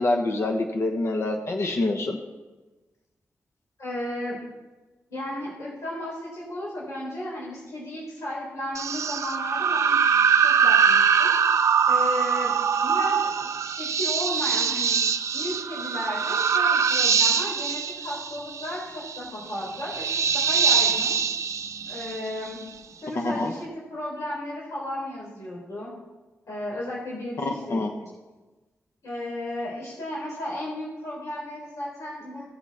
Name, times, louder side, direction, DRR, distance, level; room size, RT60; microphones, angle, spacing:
voice 1, 0.0-2.2 23.1-23.5 27.4-27.9, left 2 dB, 60° left, 3 dB, 1.1 m, -26 dB
voice 2, 3.8-4.4 5.1-10.0 10.4-11.3 11.9-12.5 12.8-15.0 15.3-21.2 21.9-22.6 23.0-25.9 26.5-27.9 29.0-32.4, left 1 dB, 75° left, -5 dB, 3.9 m, -34 dB
sound 1, 8.7-22.6, right 7 dB, 75° right, 0.5 m, -23 dB
17.5 x 7.3 x 4.2 m, 1.2 s
wide cardioid pair, 160°, 5 cm